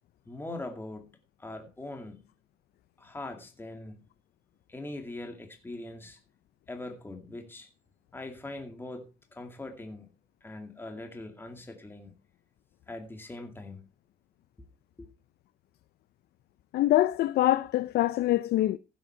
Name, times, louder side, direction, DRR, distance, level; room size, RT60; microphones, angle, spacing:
voice 1, 0.3-1.1 1.4-2.2 3.0-4.1 4.7-6.2 6.7-7.7 8.1-10.1 10.4-12.1 12.9-13.8 15.0-15.1, left 2 dB, 15° left, 2.3 m, -41 dB
voice 2, 16.7-18.8, left 14 dB, 70° left, 0.7 m, -24 dB
15.0 x 8.0 x 4.5 m
cardioid pair, 110°, 17 cm